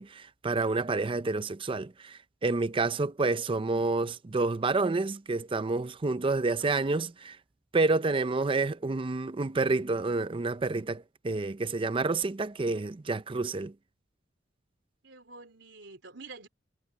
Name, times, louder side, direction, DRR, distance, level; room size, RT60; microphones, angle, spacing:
voice 1, 0.0-7.1 7.7-13.7, right 3 dB, 30° right, 0.5 m, -29 dB
voice 2, 6.6-7.1 15.0-16.5, right 3 dB, 70° right, 3.9 m, -48 dB
head